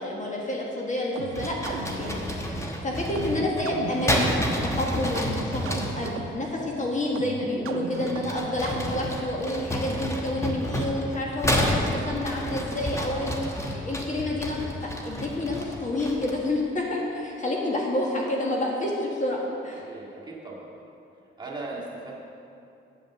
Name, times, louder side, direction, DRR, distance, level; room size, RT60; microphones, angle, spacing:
voice 1, 0.0-4.3 4.6-19.9, left 1 dB, 35° left, -2 dB, 1.5 m, -29 dB
sound 1, 1.2-9.4, right 5 dB, 90° right, 0.6 m, -37 dB
sound 2, 1.3-6.2 7.9-16.5, equal, 15° left, 1.1 m, -30 dB
voice 2, 2.0-2.6 13.1-13.3 19.7-20.8 21.4-22.2, right 3 dB, 20° right, -5 dB, 1.9 m, -40 dB
8.2 x 5.1 x 7.2 m, 2.7 s
cardioid pair, 75°, 21 cm